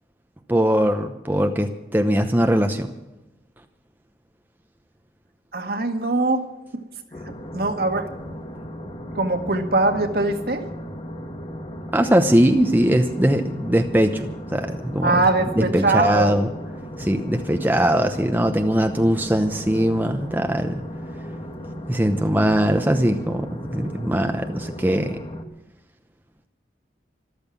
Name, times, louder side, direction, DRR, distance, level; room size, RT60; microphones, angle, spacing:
voice 1, 0.5-2.9 11.9-15.2 15.6-16.5 17.0-20.8 21.9-25.2, equal, 10° right, 5 dB, 0.8 m, -21 dB
voice 2, 5.5-6.4 7.5-8.1 9.1-10.6 15.0-16.3, right 2 dB, 55° right, 5 dB, 1.7 m, -21 dB
sound 1, 7.1-25.4, equal, 30° left, 1.3 m, -36 dB
14.0 x 13.0 x 7.1 m, 0.99 s
head